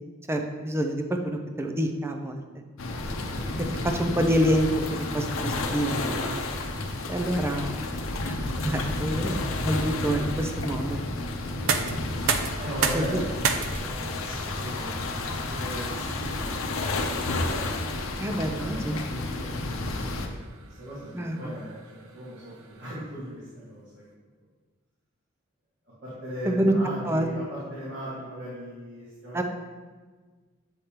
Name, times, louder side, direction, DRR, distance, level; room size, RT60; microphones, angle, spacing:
voice 1, 0.3-2.4 3.8-6.4 7.1-11.0 12.9-13.2 18.2-19.0 21.1-21.4 26.5-26.7 27.0-27.3 29.3-29.4, equal, 10° right, 4 dB, 0.4 m, -27 dB
sound 1, 2.8-20.3, left 2 dB, 85° left, 0.7 m, -31 dB
sound 2, 11.4-23.2, right 5 dB, 80° right, 0.5 m, -35 dB
voice 2, 12.6-16.7 16.9-20.4 20.8-24.0 26.0-29.4, equal, 60° right, -10 dB, 1.8 m, -39 dB
7.8 x 5.0 x 2.9 m, 1.4 s
head